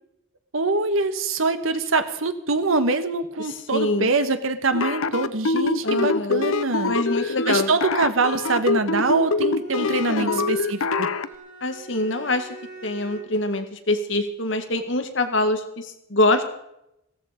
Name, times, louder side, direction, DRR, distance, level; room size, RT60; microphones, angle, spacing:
voice 1, 0.5-6.9 7.2-11.1, right 3 dB, 80° right, 10 dB, 1.4 m, -24 dB
voice 2, 3.4-4.1 5.8-6.5 6.9-7.7 9.8-10.5 11.6-12.5 12.8-16.4, left 2 dB, 65° left, 7 dB, 1.9 m, -25 dB
sound 1, 4.7-11.3, left 3 dB, 90° left, 0.7 m, -24 dB
Bowed string instrument, 8.6-13.5, right 1 dB, 40° right, 4.1 m, -43 dB
15.5 x 14.0 x 5.2 m, 0.81 s
head